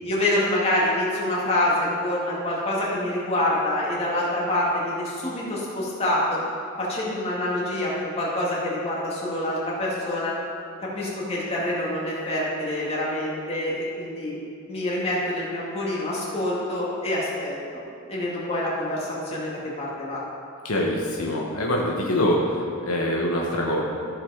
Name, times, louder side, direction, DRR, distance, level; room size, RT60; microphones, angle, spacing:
voice 1, 0.0-6.4 6.8-10.4 10.8-14.4 14.7-17.5 18.1-20.2, left 1 dB, 30° left, -6 dB, 2.2 m, -26 dB
voice 2, 20.6-23.8, left 1 dB, 80° left, -1 dB, 1.2 m, -24 dB
14.5 x 5.1 x 4.9 m, 2.5 s
head